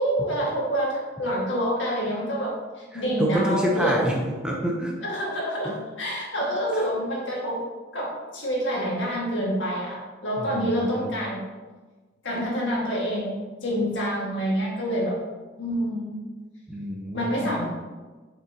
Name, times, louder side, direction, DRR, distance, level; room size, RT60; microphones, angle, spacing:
voice 1, 0.0-4.0 5.0-7.6 7.9-11.4 12.2-15.2 15.6-16.2 17.1-17.7, equal, 65° left, -3 dB, 1.8 m, -27 dB
voice 2, 2.9-5.0 5.6-5.8 6.4-6.8 10.4-11.1 16.7-17.6, equal, 5° right, -2 dB, 0.7 m, -28 dB
6.6 x 5.8 x 2.8 m, 1.3 s
head